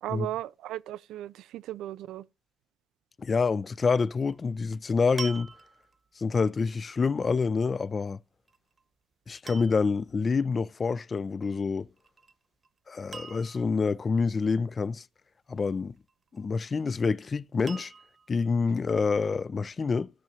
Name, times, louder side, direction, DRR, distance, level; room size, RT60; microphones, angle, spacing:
voice 1, 0.0-2.2, right 13 dB, 85° right, 0.4 m, -36 dB
voice 2, 3.2-5.5 6.2-8.2 9.3-11.9 12.9-15.0 15.5-16.0 16.3-17.9 18.3-20.1, left 4 dB, 35° left, 0.4 m, -27 dB
sound 1, 4.2-4.5 5.2-6.1 8.5-8.8 9.5-10.0 12.0-12.3 12.6-12.7 13.1-13.8 16.1-16.7 17.7-18.3 19.0-19.1, right 5 dB, 40° right, 0.9 m, -43 dB
15.0 x 6.1 x 2.8 m
cardioid pair, 90°, 0 cm